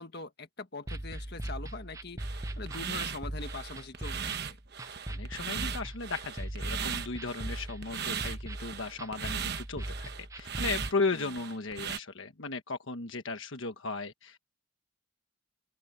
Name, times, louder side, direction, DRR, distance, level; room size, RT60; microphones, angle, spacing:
voice 1, 0.0-4.6 11.1-11.3, left 3 dB, 50° left, 1.8 m, -43 dB
sound 1, 0.9-10.9, right 1 dB, 15° right, 0.6 m, -39 dB
sound 2, 2.2-12.0, right 7 dB, 50° right, 1.2 m, -38 dB
voice 2, 5.1-14.4, left 3 dB, 70° left, 1.3 m, -36 dB
open air
head